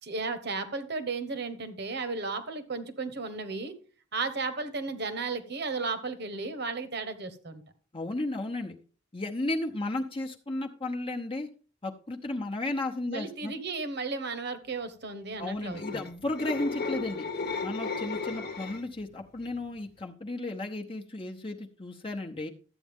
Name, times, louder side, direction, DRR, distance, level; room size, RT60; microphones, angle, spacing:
voice 1, 0.0-3.7 4.1-7.6 13.1-16.0, right 3 dB, 60° right, 10 dB, 1.2 m, -34 dB
voice 2, 7.9-8.8 9.1-11.5 11.8-13.5 15.4-17.2 17.6-22.5, left 2 dB, 30° left, 1 dB, 0.8 m, -34 dB
sound 1, 15.6-19.0 19.4-19.7, left 4 dB, 55° left, 1.1 m, -35 dB
12.5 x 8.4 x 3.6 m, 0.39 s
head